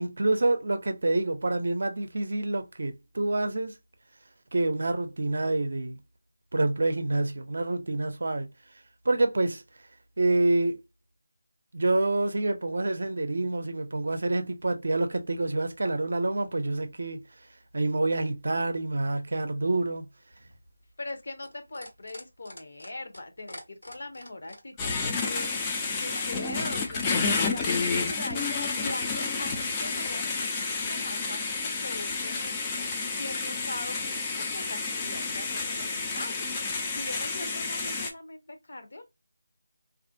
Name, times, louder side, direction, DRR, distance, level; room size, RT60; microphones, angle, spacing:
voice 1, 0.0-3.7 4.5-6.0 6.5-8.5 9.1-9.6 10.2-10.8 11.7-17.2 17.7-20.1, right 2 dB, 60° right, 0.5 m, -27 dB
sound 1, 20.3-30.9 32.0-32.1, left 1 dB, 85° left, 1.2 m, -46 dB
voice 2, 21.0-25.5 26.0-28.5 28.8-32.5 33.2-34.2 34.5-36.5 36.9-39.0, left 2 dB, 55° left, 0.7 m, -41 dB
sound 2, 24.8-38.1, left 4 dB, 15° left, 0.3 m, -30 dB
2.5 x 2.1 x 2.5 m
figure-of-eight pair, 170°, 0 cm